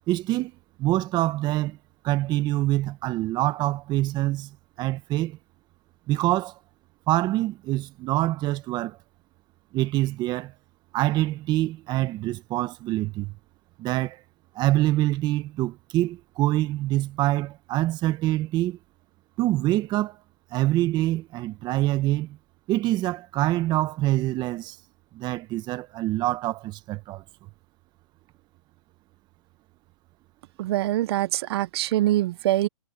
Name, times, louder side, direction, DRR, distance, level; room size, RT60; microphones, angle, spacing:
voice 1, 0.1-0.5 0.8-1.8 2.0-5.4 6.1-6.6 7.1-9.0 9.7-10.5 10.9-13.4 13.8-14.2 14.5-18.8 19.4-20.2 20.5-22.4 22.7-24.8 25.1-27.2, right 16 dB, 25° right, 1.6 m, -25 dB
voice 2, 30.6-32.7, right 15 dB, 45° right, 1.4 m, -24 dB
hypercardioid pair, 140°, 19 cm